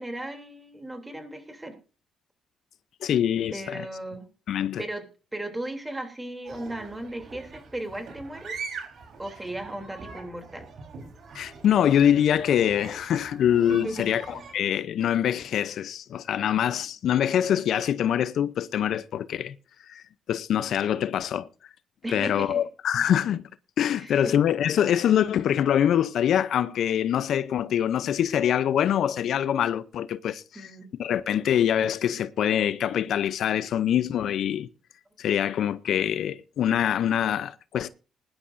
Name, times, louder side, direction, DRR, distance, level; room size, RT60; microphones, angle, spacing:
voice 1, 0.0-1.7 3.5-4.3 4.8-5.0 5.3-8.5 9.2-10.7 13.7-14.4 22.0-22.6 22.9-23.0 23.9-24.3 30.5-30.9, right 1 dB, 15° right, 3.0 m, -36 dB
voice 2, 3.0-3.9 4.5-4.8 11.3-19.5 19.9-20.0 20.3-21.5 22.1-23.4 23.8-30.7 31.0-34.7 35.2-37.9, left 10 dB, 70° left, 0.6 m, -24 dB
sound 1, 6.4-14.5, right 4 dB, 60° right, 3.9 m, -43 dB
20.5 x 11.5 x 2.6 m
cardioid pair, 90°, 0 cm